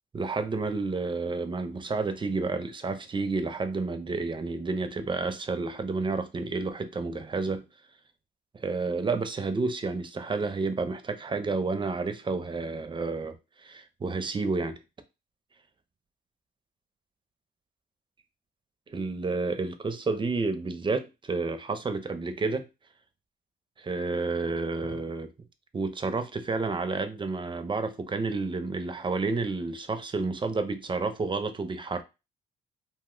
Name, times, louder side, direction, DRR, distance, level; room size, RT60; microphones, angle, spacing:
voice 1, 0.1-7.6 8.5-14.8 18.9-22.6 23.8-25.3 25.7-32.0, right 3 dB, 25° right, 0.4 m, -30 dB
2.6 x 2.1 x 3.6 m
cardioid pair, 90°, 20 cm